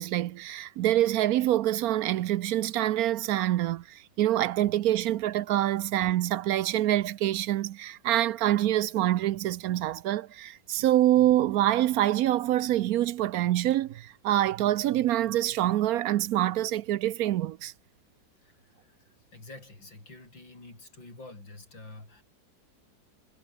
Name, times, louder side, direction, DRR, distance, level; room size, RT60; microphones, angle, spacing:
voice 1, 0.0-17.7, right 13 dB, 70° right, 0.9 m, -26 dB
voice 2, 18.4-22.2, left 2 dB, 90° left, 8.3 m, -48 dB
omnidirectional pair, 2.0 m